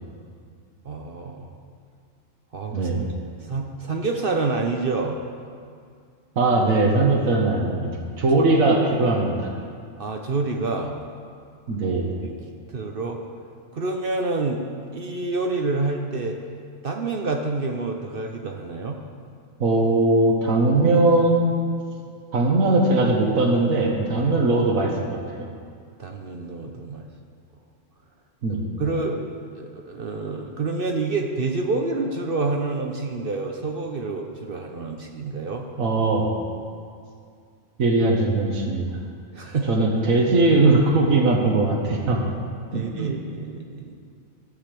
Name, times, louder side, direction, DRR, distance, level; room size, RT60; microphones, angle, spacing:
voice 1, 0.8-1.5 2.5-3.1 3.5-5.2 10.0-11.0 12.2-12.3 12.7-13.2 13.7-14.6 14.9-16.4 16.8-19.0 26.0-27.1 28.8-29.2 29.5-35.7 39.3-39.8 42.7-44.0, right 3 dB, 50° right, 2 dB, 0.8 m, -28 dB
voice 2, 2.7-3.0 6.4-7.9 8.2-9.5 11.7-12.1 19.6-21.5 22.3-25.5 28.4-28.7 35.8-36.3 37.8-38.8 39.7-42.2 42.7-43.1, right 2 dB, 90° right, 0 dB, 1.6 m, -20 dB
12.5 x 5.1 x 7.5 m, 2.2 s
omnidirectional pair, 1.4 m